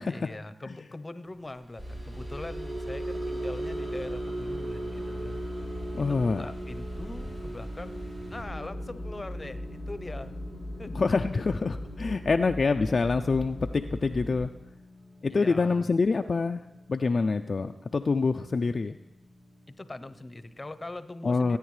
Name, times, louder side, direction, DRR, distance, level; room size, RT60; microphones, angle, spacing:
voice 1, 0.1-5.4 6.1-10.3 10.8-11.1 15.3-15.9 19.8-21.6, left 2 dB, 30° left, 11 dB, 0.7 m, -42 dB
sound 1, 1.6-18.0 18.4-18.7 19.0-19.2, right 1 dB, 35° right, 3.8 m, -40 dB
sound 2, 1.8-8.4, equal, 65° right, 4.9 m, -40 dB
voice 2, 5.9-6.4 10.9-14.5 15.2-16.6 16.9-19.0 21.2-21.6, left 4 dB, 60° left, 6 dB, 0.3 m, -26 dB
sound 3, 8.4-14.4, left 1 dB, 90° right, 4.7 m, -39 dB
17.5 x 9.1 x 3.2 m, 0.91 s
cardioid pair, 50°, 0 cm